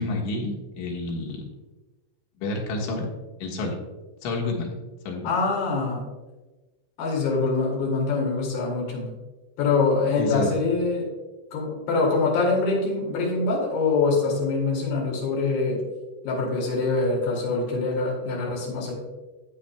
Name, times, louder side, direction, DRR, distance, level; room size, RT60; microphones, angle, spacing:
voice 1, 0.0-1.4 2.4-3.1 3.4-3.7 4.2-4.7 5.1-5.3 10.2-10.5, left 2 dB, 80° left, -1 dB, 3.8 m, -29 dB
voice 2, 5.2-6.1 7.0-9.1 9.6-11.1 11.5-15.8 16.2-18.9, left 3 dB, 55° left, -3 dB, 3.8 m, -24 dB
12.0 x 8.8 x 2.3 m, 1.2 s
omnidirectional pair, 5.3 m